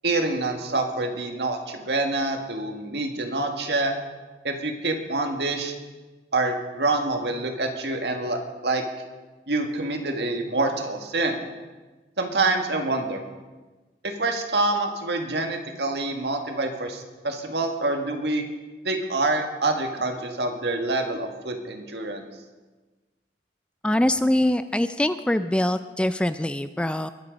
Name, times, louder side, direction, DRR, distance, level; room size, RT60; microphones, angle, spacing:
voice 1, 0.0-4.0 4.4-5.7 6.3-8.8 9.5-11.4 12.2-13.2 14.2-18.4 18.8-22.3, right 2 dB, 75° right, 4 dB, 1.8 m, -26 dB
voice 2, 23.8-27.1, left 1 dB, 5° left, 11 dB, 0.3 m, -23 dB
21.5 x 7.6 x 5.3 m, 1.2 s
head